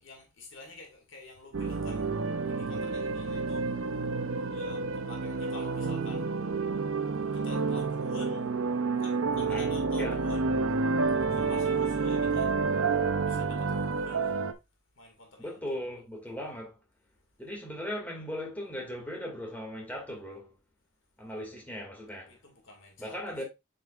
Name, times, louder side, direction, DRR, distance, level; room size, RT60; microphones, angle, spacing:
voice 1, 0.0-2.2 2.4-3.8 4.5-6.3 6.9-7.0 7.3-8.6 9.0-10.5 11.3-12.6 13.2-14.5 15.0-15.8 22.3-23.4, left 2 dB, 70° left, 2.3 m, -49 dB
sound 1, 1.5-14.5, right 4 dB, 80° right, 0.8 m, -29 dB
voice 2, 15.4-16.7 17.4-20.5 21.2-22.3 23.0-23.4, left 1 dB, 10° left, 2.3 m, -38 dB
7.9 x 5.3 x 2.5 m
head